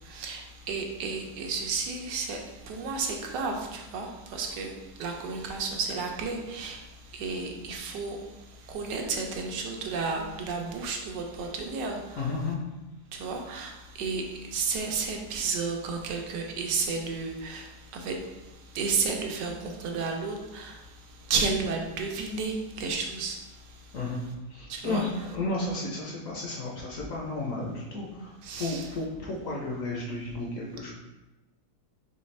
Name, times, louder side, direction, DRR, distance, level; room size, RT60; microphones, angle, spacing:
voice 1, 0.0-6.8 7.1-8.2 8.7-12.3 13.1-18.2 18.7-20.8 21.3-23.4 24.7-25.0 28.4-28.9, right 4 dB, 80° right, 2 dB, 1.3 m, -32 dB
voice 2, 12.2-12.6 23.9-24.2 24.5-30.9, left 2 dB, 65° left, -2 dB, 0.9 m, -33 dB
4.2 x 3.2 x 3.2 m, 1.0 s
omnidirectional pair, 1.8 m